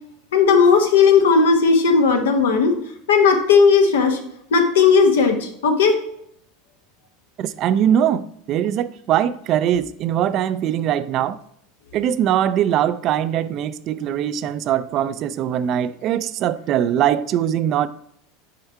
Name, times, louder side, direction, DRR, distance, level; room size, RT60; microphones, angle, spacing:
voice 1, 0.3-2.7 3.1-4.2 4.5-5.9, left 5 dB, 90° left, 1.1 m, -15 dB
voice 2, 7.4-11.4 11.9-17.9, right 10 dB, 50° right, 0.4 m, -21 dB
5.6 x 4.5 x 4.6 m
supercardioid pair, 110°, 0 cm